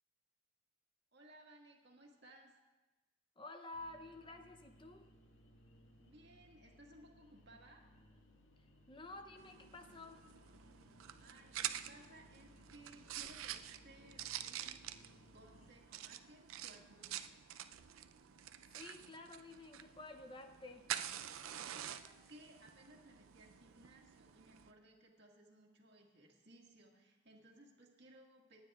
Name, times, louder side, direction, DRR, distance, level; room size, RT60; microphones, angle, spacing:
voice 1, 1.1-2.6 6.0-7.8 11.2-14.9 15.3-17.4 21.6-28.6, right 1 dB, 55° right, 0 dB, 1.8 m, -61 dB
voice 2, 3.4-5.1 8.9-10.2 18.7-20.8, left 2 dB, 25° left, 6 dB, 0.5 m, -51 dB
sound 1, 3.7-15.7, left 1 dB, 75° left, 1.6 m, -64 dB
sound 2, 9.4-24.7, right 11 dB, 85° right, 0.5 m, -48 dB
27.5 x 9.8 x 2.4 m, 1.1 s
head